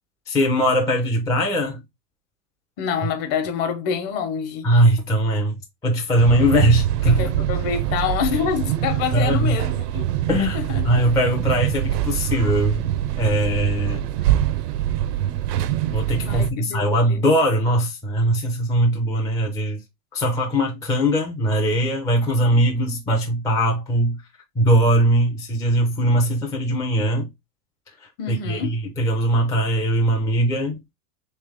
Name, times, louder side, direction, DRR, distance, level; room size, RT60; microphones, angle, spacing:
voice 1, 0.3-1.8 4.6-7.2 9.1-9.6 10.3-12.8 13.2-14.1 15.9-19.8 20.1-24.2 24.6-27.3 28.3-30.9, right 1 dB, 10° left, 0.4 m, -20 dB
voice 2, 2.8-4.7 7.1-10.0 10.5-10.8 16.3-17.2 28.2-28.8, left 7 dB, 50° left, 1.0 m, -26 dB
sound 1, 6.2-16.5, right 12 dB, 75° right, 0.6 m, -24 dB
3.3 x 3.1 x 3.4 m
hypercardioid pair, 115°, 48 cm